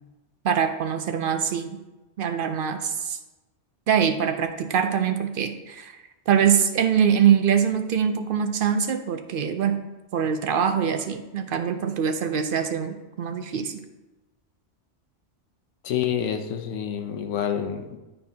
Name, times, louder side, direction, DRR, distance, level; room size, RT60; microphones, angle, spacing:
voice 1, 0.4-1.8 2.2-3.2 3.9-6.0 6.3-9.8 10.1-13.8, right 8 dB, 60° right, 7 dB, 0.6 m, -23 dB
voice 2, 15.8-18.0, left 9 dB, 85° left, 6 dB, 1.0 m, -28 dB
11.0 x 4.4 x 2.8 m, 1.1 s
omnidirectional pair, 1.2 m